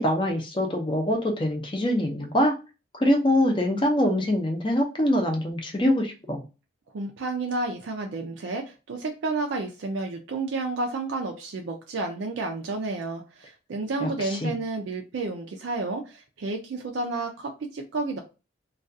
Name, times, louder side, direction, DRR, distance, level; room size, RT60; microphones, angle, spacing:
voice 1, 0.0-2.6 2.9-6.4 14.0-14.5, left 1 dB, 25° left, 0.5 m, -24 dB
voice 2, 6.9-18.2, right 3 dB, 80° right, 0.4 m, -31 dB
2.3 x 2.3 x 2.6 m
head